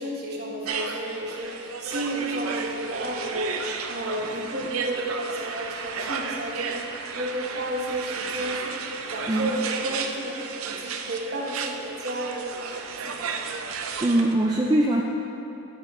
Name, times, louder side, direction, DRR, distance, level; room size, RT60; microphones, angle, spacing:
voice 1, 0.0-10.4 10.6-13.3, right 1 dB, 50° right, -2 dB, 1.2 m, -32 dB
sound 1, 0.7-14.3, right 5 dB, 85° right, 0.5 m, -33 dB
voice 2, 14.0-15.0, right 1 dB, 20° right, -2 dB, 0.4 m, -22 dB
9.4 x 6.0 x 4.3 m, 3.0 s
head